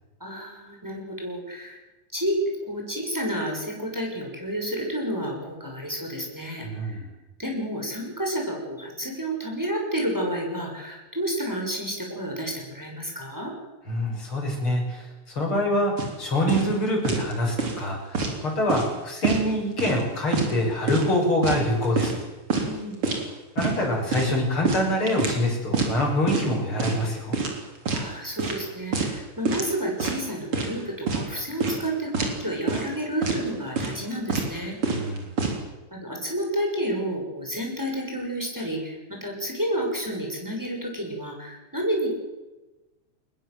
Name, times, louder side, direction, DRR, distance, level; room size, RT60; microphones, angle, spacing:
voice 1, 0.2-1.8 2.1-2.4 2.7-6.9 7.4-13.5 22.7-23.1 27.9-34.8 35.9-42.1, equal, 5° right, 0 dB, 6.2 m, -30 dB
voice 2, 6.6-7.0 13.9-15.0 15.4-15.9 16.2-22.2 23.6-27.4 34.9-35.3, left 1 dB, 40° left, 0 dB, 7.4 m, -25 dB
sound 1, 16.0-16.1 16.5-16.7 17.0-17.3 17.6-18.4 18.7-18.9 19.2-20.0 20.3-20.5 20.9-22.2 22.5-22.7 23.0-23.2 23.6-23.8 24.1-25.4 25.7-25.9 26.3-26.5 26.8-27.1 27.3-28.1 28.4-28.6 28.9-29.2 29.5-29.7 30.0-30.7 31.1-31.3 31.6-31.9 32.1-32.4 32.7-32.9 33.2-33.4 33.8-34.0 34.3-34.5 34.8-35.6, right 4 dB, 45° right, 4.4 m, -26 dB
22.5 x 20.5 x 7.9 m, 1.1 s
omnidirectional pair, 3.4 m